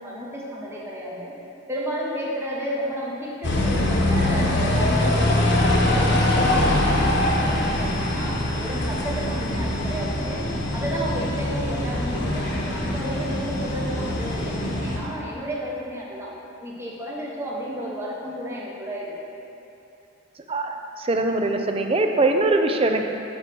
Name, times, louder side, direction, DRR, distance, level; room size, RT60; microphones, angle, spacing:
voice 1, 0.0-1.3 1.7-10.5 10.7-16.3 16.6-19.1, equal, 15° right, -5 dB, 1.2 m, -32 dB
sound 1, 3.4-15.0, left 1 dB, 60° left, 1.0 m, -23 dB
voice 2, 20.5-23.1, right 2 dB, 30° right, 4 dB, 0.5 m, -22 dB
7.3 x 4.5 x 6.2 m, 2.9 s
head